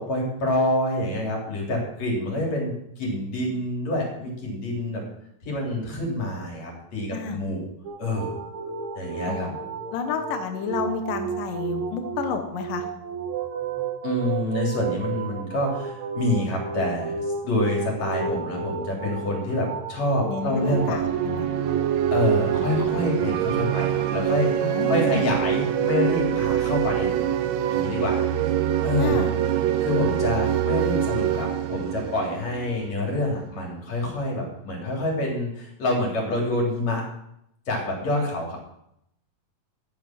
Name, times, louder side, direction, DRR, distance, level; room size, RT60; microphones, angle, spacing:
voice 1, 0.0-5.0 5.4-7.6 8.0-8.3 8.9-9.5 14.0-21.0 22.1-27.2 27.7-28.2 28.8-29.2 29.8-37.0 37.7-38.6, left 1 dB, 50° left, -1 dB, 4.3 m, -27 dB
sound 1, 7.8-24.2, right 5 dB, 55° right, 1.6 m, -32 dB
voice 2, 9.3-9.6 9.9-12.9 20.3-21.5 24.6-25.3 29.0-29.3, left 6 dB, 75° left, 6 dB, 2.8 m, -30 dB
sound 2, 20.4-33.1, right 10 dB, 70° right, 1.8 m, -25 dB
12.0 x 9.0 x 6.0 m, 0.76 s
omnidirectional pair, 4.0 m